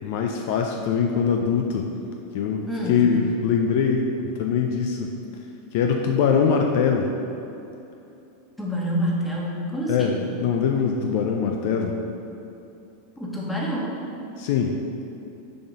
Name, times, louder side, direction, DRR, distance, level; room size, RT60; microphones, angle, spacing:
voice 1, 0.0-1.9 2.3-2.6 2.9-4.1 4.4-5.1 5.7-7.1 9.9-12.0 14.4-14.7, left 6 dB, 55° left, 2 dB, 0.5 m, -22 dB
voice 2, 2.7-3.2 8.6-10.2 13.2-14.0, equal, 5° left, -4 dB, 1.4 m, -27 dB
6.8 x 3.8 x 5.0 m, 2.9 s
figure-of-eight pair, 85°, 0 cm